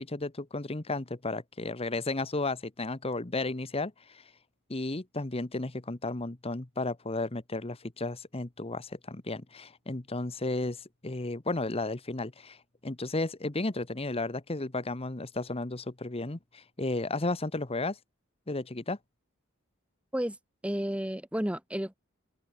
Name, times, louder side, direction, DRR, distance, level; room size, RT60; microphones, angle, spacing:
voice 1, 0.0-4.3 4.7-18.0 18.5-19.0, left 2 dB, 30° left, 1.1 m, -33 dB
voice 2, 20.6-21.9, equal, 5° right, 1.5 m, -31 dB
head